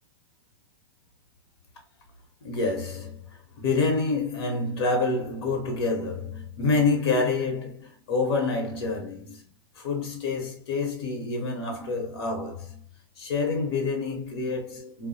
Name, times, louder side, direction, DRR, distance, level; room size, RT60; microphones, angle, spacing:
voice 1, 2.4-12.8 13.2-15.1, left 3 dB, 75° left, 1.0 m, -28 dB
2.2 x 2.1 x 2.7 m
supercardioid pair, 150°, 13 cm